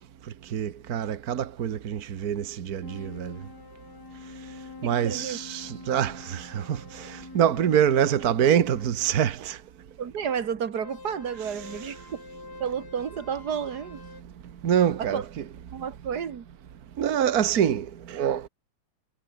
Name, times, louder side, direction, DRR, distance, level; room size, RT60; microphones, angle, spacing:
voice 1, 0.2-3.4 4.8-9.6 14.6-15.2 17.0-18.5, right 9 dB, 65° right, 0.9 m, -25 dB
sound 1, 2.8-8.9 10.8-14.2, left 4 dB, 35° left, 3.0 m, -46 dB
voice 2, 4.8-5.4 10.0-12.0 12.6-14.0 15.0-15.3 15.6-16.5, right 7 dB, 45° right, 1.6 m, -31 dB
omnidirectional pair, 3.3 m